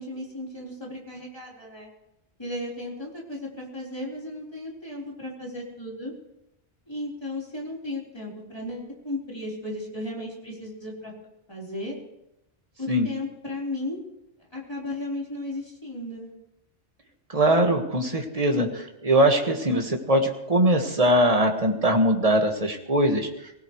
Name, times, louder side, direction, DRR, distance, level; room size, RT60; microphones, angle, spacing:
voice 1, 0.0-1.9 2.4-6.1 6.9-11.1 11.5-12.0 12.8-14.0 14.5-16.3, left 1 dB, 25° left, -4 dB, 4.2 m, -35 dB
voice 2, 17.3-23.3, right 1 dB, 35° right, 2 dB, 1.8 m, -21 dB
24.0 x 16.5 x 3.2 m, 0.84 s
omnidirectional pair, 1.1 m